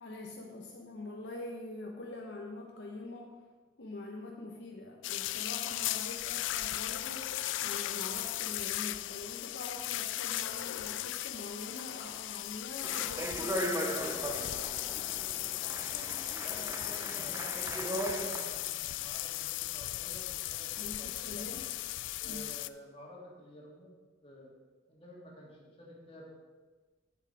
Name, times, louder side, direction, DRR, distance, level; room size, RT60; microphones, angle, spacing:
voice 1, 0.0-3.4 3.8-13.9 20.8-21.7 22.2-22.4, left 2 dB, 65° left, 0 dB, 0.8 m, -44 dB
sound 1, 5.0-22.7, left 15 dB, 85° left, 0.3 m, -37 dB
Speech, 12.8-18.6, right 1 dB, 15° right, 0.6 m, -38 dB
voice 2, 16.4-21.5 22.2-23.9 24.2-24.5 24.9-26.3, left 1 dB, 30° left, -3 dB, 2.0 m, -51 dB
8.1 x 7.1 x 4.7 m, 1.3 s
head